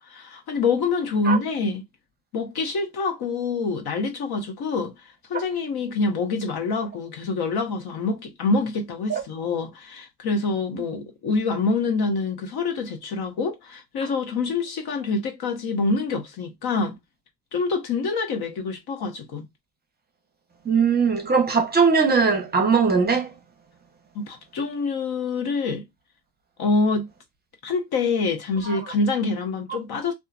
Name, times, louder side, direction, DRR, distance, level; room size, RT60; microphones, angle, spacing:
voice 1, 0.1-1.9 2.3-4.9 5.3-17.0 17.5-19.4 24.1-25.8 26.6-27.1 27.6-30.1, left 4 dB, 55° left, 1.0 m, -26 dB
voice 2, 20.6-23.3 28.7-28.8, right 5 dB, 20° right, 0.7 m, -20 dB
2.7 x 2.3 x 2.3 m
cardioid pair, 125°, 44 cm